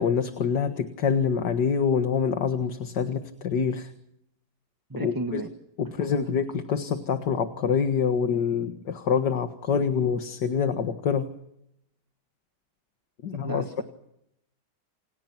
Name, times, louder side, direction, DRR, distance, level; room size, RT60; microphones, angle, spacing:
voice 1, 0.0-3.9 5.0-5.4 5.8-11.3 13.2-13.6, left 6 dB, 80° left, 7 dB, 2.3 m, -26 dB
voice 2, 4.9-5.5 13.4-13.8, right 1 dB, 15° right, 5 dB, 1.3 m, -33 dB
28.5 x 27.5 x 6.1 m, 0.78 s
omnidirectional pair, 1.8 m